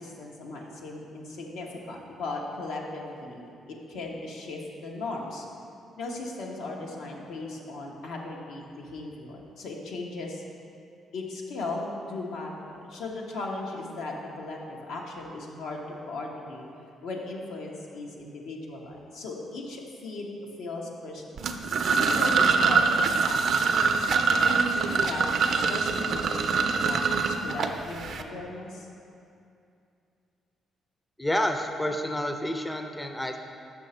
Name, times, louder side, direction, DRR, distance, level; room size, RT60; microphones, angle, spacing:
voice 1, 0.0-5.5 6.0-10.4 11.1-15.8 16.1-16.6 17.0-20.3 20.6-21.5 21.9-23.8 24.2-25.3 25.7-28.9, left 2 dB, 85° left, -1 dB, 0.9 m, -37 dB
sound 1, 21.4-28.2, right 5 dB, 60° right, 0.4 m, -24 dB
voice 2, 31.2-33.4, left 1 dB, 10° left, 5 dB, 0.4 m, -29 dB
6.3 x 5.8 x 4.2 m, 2.6 s
cardioid pair, 90°, 0 cm